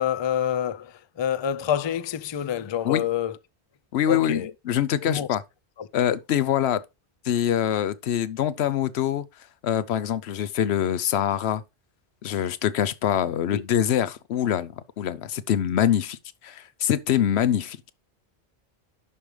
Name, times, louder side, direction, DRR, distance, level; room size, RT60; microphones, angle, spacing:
voice 1, 0.0-3.4 4.1-4.5 5.0-5.3 5.8-5.9 13.5-13.6, left 9 dB, 40° left, 0.4 m, -27 dB
voice 2, 3.9-5.4 5.9-6.8 7.2-9.3 9.6-11.6 12.2-16.2 16.4-17.8, left 10 dB, 85° left, 0.9 m, -24 dB
11.0 x 5.2 x 3.2 m
omnidirectional pair, 1.1 m